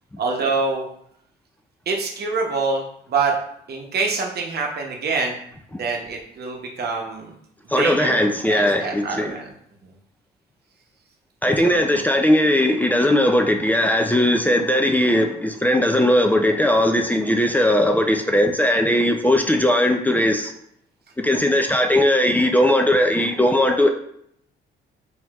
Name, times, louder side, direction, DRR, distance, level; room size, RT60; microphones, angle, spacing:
voice 1, 0.2-0.9 1.9-3.3 3.7-5.3 5.7-7.3 7.6-9.5 9.8-9.9 11.6-11.8, right 4 dB, 55° right, 1 dB, 0.8 m, -25 dB
voice 2, 7.7-9.4 11.4-20.5 21.2-23.9, left 1 dB, 10° left, 4 dB, 0.3 m, -18 dB
4.2 x 2.7 x 2.4 m, 0.70 s
cardioid pair, 90°, 20 cm